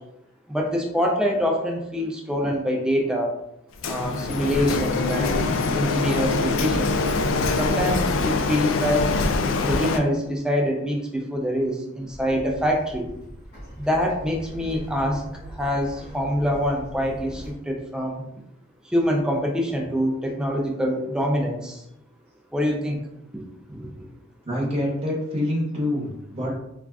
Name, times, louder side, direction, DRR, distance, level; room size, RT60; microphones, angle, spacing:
voice 1, 0.5-3.3 3.8-6.9 7.6-9.1 9.7-13.1 13.8-15.2 15.6-18.2 18.9-21.8 22.5-23.0 23.7-23.9, equal, 5° right, 0 dB, 0.4 m, -25 dB
Printer, 3.8-10.0, left 3 dB, 70° left, 0.3 m, -24 dB
sound 1, 12.1-17.5, equal, 50° left, 1.2 m, -41 dB
voice 2, 24.4-26.5, left 1 dB, 30° right, -5 dB, 0.8 m, -26 dB
3.4 x 2.5 x 2.3 m, 0.82 s
head